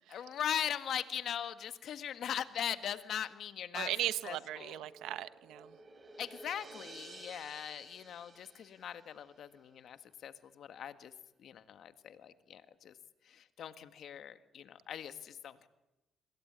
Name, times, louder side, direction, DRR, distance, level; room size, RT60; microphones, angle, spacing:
voice 1, 0.1-3.9 4.2-4.8 6.2-11.1 11.4-12.9 13.3-15.7, left 9 dB, 65° left, 11 dB, 1.6 m, -40 dB
voice 2, 3.7-5.8, right 13 dB, 90° right, 14 dB, 1.1 m, -38 dB
sound 1, 4.3-9.5, right 3 dB, 35° right, 6.4 m, -54 dB
26.5 x 21.0 x 9.3 m, 0.99 s
cardioid pair, 90°, 0 cm